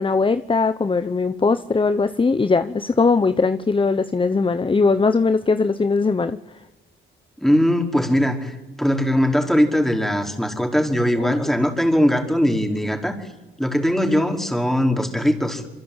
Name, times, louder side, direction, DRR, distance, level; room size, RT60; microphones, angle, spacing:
voice 1, 0.0-6.4 11.2-11.4, left 4 dB, 25° left, 12 dB, 1.0 m, -20 dB
voice 2, 7.4-13.3 13.6-15.7, equal, ahead, 3 dB, 5.0 m, -20 dB
26.5 x 23.5 x 9.0 m, 1.0 s
cardioid pair, 70°, 21 cm